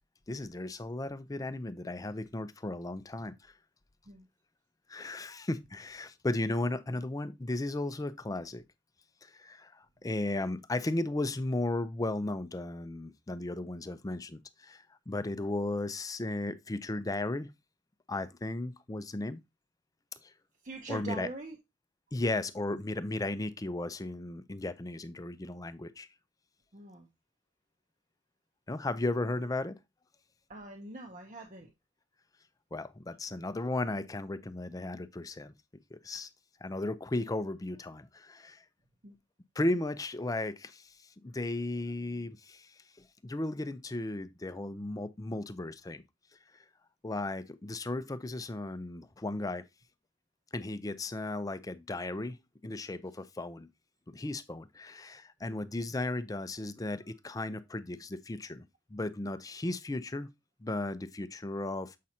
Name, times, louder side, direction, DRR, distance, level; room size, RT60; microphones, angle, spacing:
voice 1, 0.3-3.5 4.9-8.6 9.2-17.5 18.1-19.4 20.2-20.3 20.9-21.3 22.1-26.1 28.7-29.8 32.7-35.5 35.9-36.3 36.6-38.6 39.6-46.0 46.5-46.6 47.0-49.6 50.5-52.4 52.6-53.7 54.1-58.7 58.9-60.3 60.6-61.9, left 2 dB, 20° left, 0.4 m, -35 dB
voice 2, 20.6-21.6 26.7-27.1 30.5-31.7 39.0-39.1, right 3 dB, 40° right, 0.8 m, -43 dB
7.4 x 5.4 x 2.8 m
head